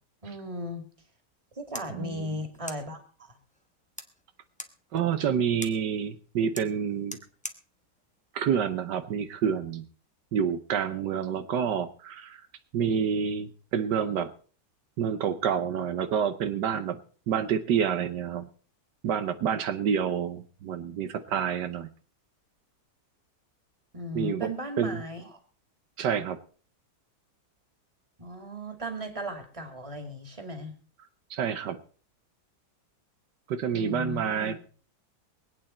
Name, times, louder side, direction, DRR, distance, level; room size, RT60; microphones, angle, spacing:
voice 1, 0.2-0.8 1.6-3.3 23.9-25.4 26.1-26.2 28.2-30.7 33.7-34.5, equal, 20° right, 6 dB, 2.2 m, -36 dB
sound 1, 1.3-9.3, left 1 dB, 5° left, 0.7 m, -47 dB
voice 2, 1.9-2.4 4.9-7.2 8.3-9.8 10.3-12.4 12.7-14.3 15.0-17.0 17.3-18.5 19.0-21.9 24.1-24.5 24.8-25.0 26.0-26.4 31.3-31.8 33.5-34.6, right 7 dB, 80° right, 10 dB, 1.5 m, -28 dB
23.5 x 8.9 x 4.3 m, 0.40 s
omnidirectional pair, 1.9 m